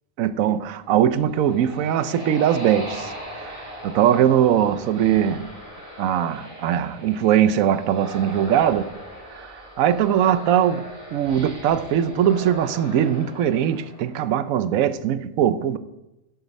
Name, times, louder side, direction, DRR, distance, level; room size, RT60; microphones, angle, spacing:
voice 1, 0.2-3.5 3.8-5.4 6.0-8.9 9.3-10.8 11.1-15.8, right 10 dB, 90° right, 1.1 m, -21 dB
sound 1, 0.9-14.5, equal, 25° right, 3.8 m, -39 dB
11.5 x 6.6 x 5.3 m
omnidirectional pair, 1.4 m